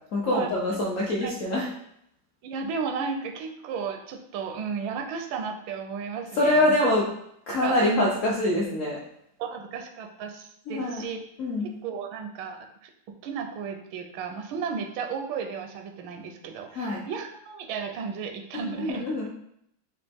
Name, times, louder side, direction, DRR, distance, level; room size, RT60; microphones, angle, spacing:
voice 1, 0.1-1.7 6.4-7.0 7.5-9.0 10.7-11.1 11.4-11.7 16.8-17.0 18.5-19.3, left 1 dB, 65° left, -4 dB, 0.8 m, -25 dB
voice 2, 2.4-6.8 7.6-8.1 9.4-11.2 11.6-19.3, right 5 dB, 80° right, 6 dB, 1.4 m, -34 dB
5.0 x 2.9 x 3.4 m, 0.74 s
omnidirectional pair, 2.1 m